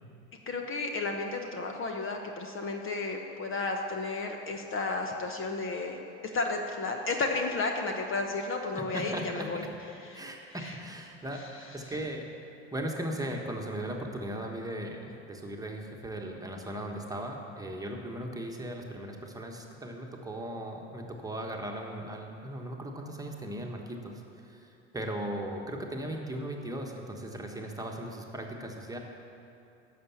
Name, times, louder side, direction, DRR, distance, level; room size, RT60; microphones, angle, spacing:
voice 1, 0.5-6.0 6.3-9.6 10.1-10.2 10.6-10.8 11.9-12.0, left 3 dB, 35° left, 3 dB, 1.1 m, -33 dB
voice 2, 8.8-9.5 10.1-12.2 12.7-29.0, right 1 dB, 10° right, 1 dB, 1.4 m, -38 dB
11.0 x 6.8 x 7.2 m, 2.9 s
hypercardioid pair, 80°, 36 cm